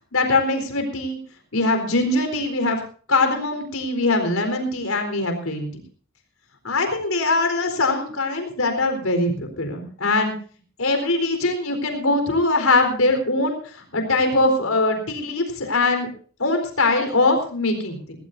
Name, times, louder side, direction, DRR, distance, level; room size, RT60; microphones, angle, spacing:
voice 1, 0.1-1.2 1.5-2.8 3.1-5.7 6.6-10.3 10.8-16.1 16.4-18.0, left 2 dB, 80° left, 6 dB, 4.1 m, -22 dB
18.5 x 18.0 x 2.7 m, 0.43 s
head